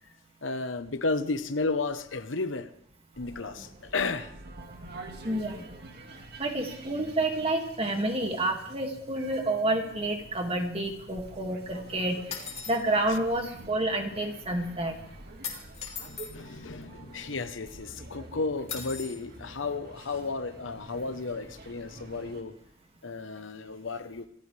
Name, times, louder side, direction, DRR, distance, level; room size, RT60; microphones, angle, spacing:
voice 1, 0.4-2.7 3.2-4.3 16.0-22.5 23.0-24.3, left 3 dB, 90° left, 10 dB, 1.1 m, -33 dB
sound 1, 3.1-22.4, right 2 dB, 60° right, 2.2 m, -47 dB
voice 2, 5.2-5.7 6.4-12.2 12.7-14.9, right 1 dB, 30° right, 3 dB, 2.3 m, -29 dB
sound 2, 12.3-12.8 15.4-16.3 18.7-19.2, left 6 dB, 35° left, 3.4 m, -38 dB
26.5 x 14.5 x 3.4 m, 0.66 s
head